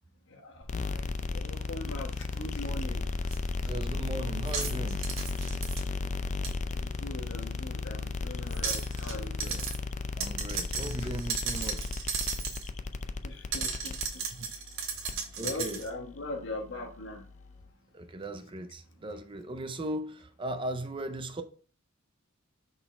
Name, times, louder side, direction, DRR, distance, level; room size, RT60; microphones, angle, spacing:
sound 1, 0.6-17.7, left 3 dB, 35° left, 0.4 m, -35 dB
voice 1, 0.8-3.0 6.7-9.5 13.2-14.0 15.4-17.2, left 2 dB, 60° left, 1.3 m, -40 dB
sound 2, 3.3-3.4 4.5-5.8 6.4-6.5 8.5-9.2 9.4-9.8 10.2-12.7 13.5-15.9, right 6 dB, 65° right, 1.3 m, -35 dB
voice 2, 3.6-5.1 9.4-9.7 10.2-11.9 14.4-14.5 15.4-15.8 17.9-21.4, right 1 dB, 25° right, 0.5 m, -38 dB
5.9 x 4.1 x 4.3 m
head